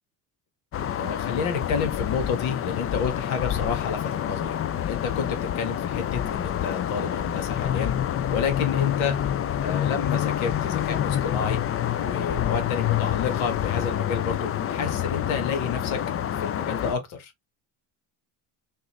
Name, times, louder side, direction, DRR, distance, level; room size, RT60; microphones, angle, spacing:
sound 1, 0.7-17.0, left 10 dB, 30° left, 0.4 m, -27 dB
voice 1, 1.0-4.6 4.9-7.9 8.3-9.2 9.6-11.6 12.0-16.0 16.4-17.3, left 6 dB, 75° left, 1.6 m, -30 dB
3.7 x 2.6 x 3.0 m
supercardioid pair, 80°, 48 cm